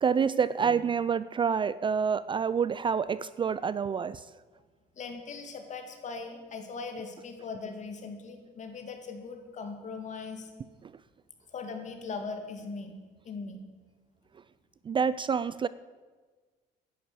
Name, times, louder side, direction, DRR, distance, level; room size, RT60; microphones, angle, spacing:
voice 1, 0.0-4.2 14.9-15.7, right 6 dB, 30° right, 17 dB, 0.4 m, -27 dB
voice 2, 5.0-10.5 11.5-13.0 13.2-13.6, left 4 dB, 45° left, 5 dB, 2.5 m, -40 dB
11.0 x 10.5 x 8.6 m, 1.4 s
cardioid pair, 110°, 17 cm